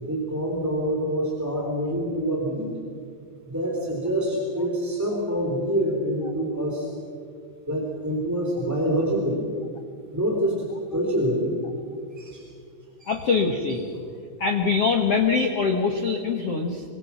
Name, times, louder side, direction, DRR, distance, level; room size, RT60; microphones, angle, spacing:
voice 1, 0.0-2.7 3.5-6.9 7.7-9.5 10.1-11.6 12.2-12.4 13.0-13.2, equal, 5° right, -2 dB, 2.9 m, -26 dB
voice 2, 13.1-13.8 14.4-16.8, left 5 dB, 70° left, 4 dB, 1.4 m, -23 dB
27.0 x 25.0 x 5.9 m, 2.5 s
omnidirectional pair, 5.3 m